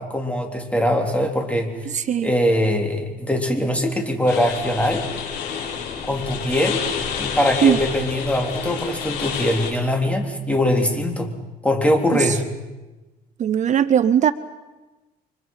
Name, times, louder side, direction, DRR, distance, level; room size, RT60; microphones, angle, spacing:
voice 1, 0.0-1.7 2.2-5.0 6.1-6.8 7.2-11.3 11.6-12.4, left 1 dB, 10° left, 3 dB, 3.7 m, -22 dB
voice 2, 1.9-2.3 7.6-7.8 12.1-12.4 13.4-14.3, right 9 dB, 45° right, 13 dB, 0.7 m, -19 dB
sound 1, 4.3-9.7, left 7 dB, 80° left, 7.2 m, -29 dB
30.0 x 24.5 x 5.7 m, 1.1 s
cardioid pair, 110°, 17 cm